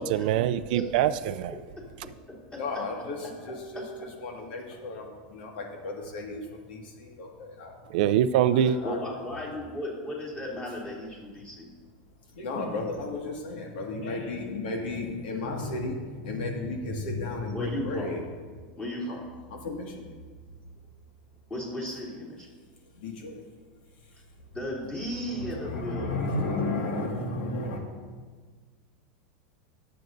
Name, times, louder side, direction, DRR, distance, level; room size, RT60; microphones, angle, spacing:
voice 1, 0.0-1.5 7.9-8.8, right 10 dB, 65° right, 14 dB, 0.4 m, -24 dB
voice 2, 0.7-2.9 3.2-4.1 4.5-4.6 8.8-11.7 17.5-18.2 18.8-19.2 21.5-22.5 24.5-26.3, left 1 dB, 15° left, -4 dB, 2.9 m, -36 dB
voice 3, 2.6-3.2 3.4-3.8 4.2-7.8 8.5-9.0 12.4-18.2 19.6-20.1 23.0-23.4 25.6-27.8, left 2 dB, 75° left, 1 dB, 1.9 m, -33 dB
20.0 x 7.7 x 2.6 m, 1.5 s
supercardioid pair, 150°, 5 cm